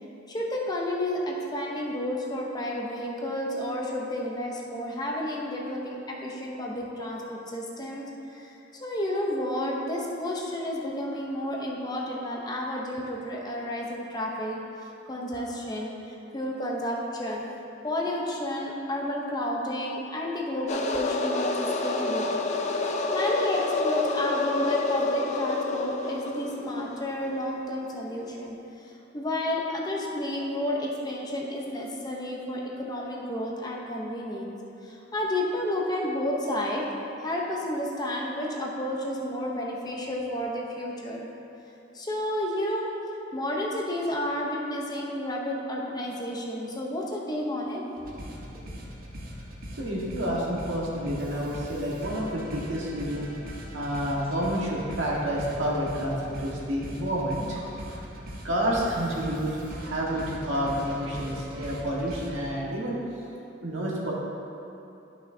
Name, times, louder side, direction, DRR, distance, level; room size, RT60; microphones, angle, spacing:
voice 1, 0.3-8.1 8.3-17.5 17.8-22.5 23.1-34.5 34.8-36.9 37.2-41.3 41.9-42.9 43.3-47.8 48.5-48.7, left 1 dB, 20° left, -2 dB, 0.8 m, -31 dB
sound 1, 20.7-27.3, left 2 dB, 35° left, 0.4 m, -28 dB
sound 2, 48.0-62.4, equal, 50° right, 1.1 m, -41 dB
voice 2, 49.8-53.3 53.7-58.1 58.4-63.0 63.6-64.1, equal, 80° right, -5 dB, 1.6 m, -29 dB
11.0 x 5.9 x 2.7 m, 2.9 s
head